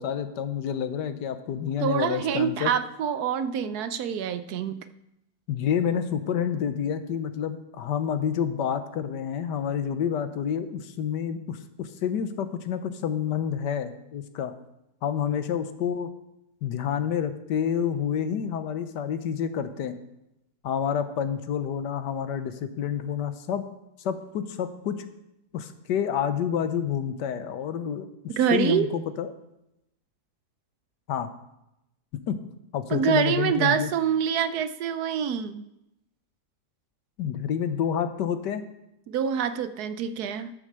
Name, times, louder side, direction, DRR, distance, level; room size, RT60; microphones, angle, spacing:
voice 1, 0.0-2.7 5.5-14.5 15.0-16.1 16.6-19.9 20.6-23.6 24.0-25.0 25.5-28.1 28.5-29.3 31.1-31.3 32.3-32.4 32.7-33.9 37.2-38.6, left 8 dB, 80° left, 10 dB, 1.5 m, -28 dB
voice 2, 1.8-4.8 28.4-28.9 32.9-35.6 39.1-40.5, right 8 dB, 70° right, 12 dB, 1.1 m, -26 dB
12.5 x 6.5 x 6.6 m, 0.87 s
omnidirectional pair, 1.8 m